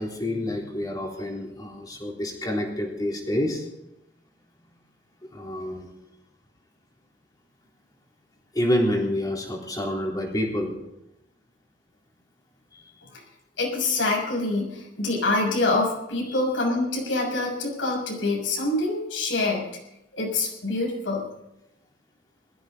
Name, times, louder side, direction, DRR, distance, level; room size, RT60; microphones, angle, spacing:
voice 1, 0.0-3.7 5.3-5.9 8.5-10.8 12.7-12.8 16.3-16.4, left 1 dB, 20° left, -1 dB, 3.8 m, -28 dB
voice 2, 13.6-19.7 20.2-21.2, left 2 dB, 80° left, 0 dB, 6.6 m, -25 dB
20.0 x 14.5 x 4.0 m, 0.88 s
head